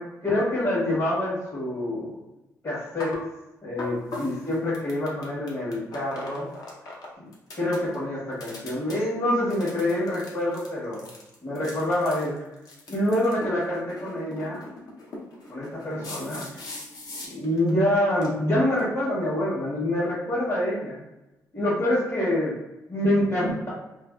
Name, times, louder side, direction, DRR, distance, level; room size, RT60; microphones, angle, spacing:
voice 1, 0.0-2.2 2.6-3.1 3.6-6.5 7.2-7.3 7.6-11.1 11.4-12.3 12.9-14.6 15.5-16.4 17.3-21.0 21.5-22.5 22.9-23.7, left 1 dB, 45° left, -10 dB, 1.2 m, -26 dB
sound 1, 3.0-3.2 3.8-7.1 7.3-8.0 8.3-9.0 9.5-17.7 18.0-18.3 18.8-18.9, left 2 dB, 70° left, 0.7 m, -39 dB
2.6 x 2.1 x 2.3 m, 0.98 s
supercardioid pair, 65°, 7 cm